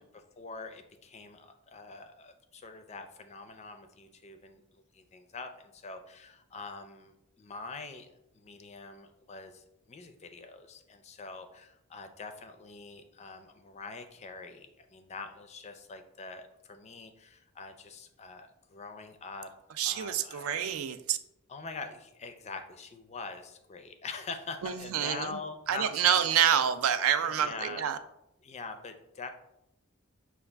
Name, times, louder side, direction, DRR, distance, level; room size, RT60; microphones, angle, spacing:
voice 1, 0.0-19.5 19.8-20.6 21.5-26.3 27.2-27.8 28.4-29.3, left 4 dB, 30° left, 7 dB, 0.4 m, -44 dB
voice 2, 19.8-21.2 24.6-25.3 25.7-28.0, right 9 dB, 65° right, 10 dB, 0.3 m, -27 dB
5.9 x 2.3 x 3.4 m, 0.83 s
head